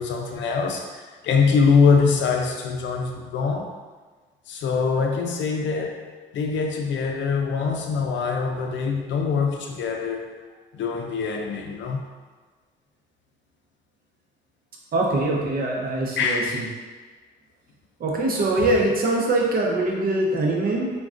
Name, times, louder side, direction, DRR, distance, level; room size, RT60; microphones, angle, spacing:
voice 1, 0.0-3.7 4.5-6.1 6.3-10.3 10.7-12.0 16.2-16.7, left 5 dB, 70° left, 0.4 m, -23 dB
voice 2, 14.9-16.6 18.0-20.9, right 2 dB, 50° right, 0.6 m, -23 dB
3.5 x 2.2 x 2.4 m
cardioid pair, 90°, 20 cm